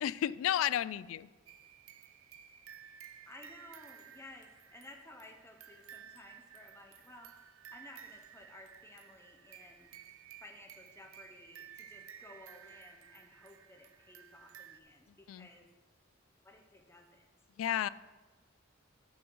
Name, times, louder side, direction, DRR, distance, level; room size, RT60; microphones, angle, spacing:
voice 1, 0.0-1.3 15.3-15.5 17.6-17.9, left 10 dB, 75° left, 19 dB, 0.3 m, -32 dB
sound 1, 1.5-14.8, right 9 dB, 85° right, 0.6 m, -55 dB
voice 2, 2.9-7.3 7.7-9.9 10.4-15.7 16.4-17.3, left 1 dB, 15° left, 3 dB, 0.8 m, -56 dB
10.5 x 6.3 x 4.6 m, 1.2 s
head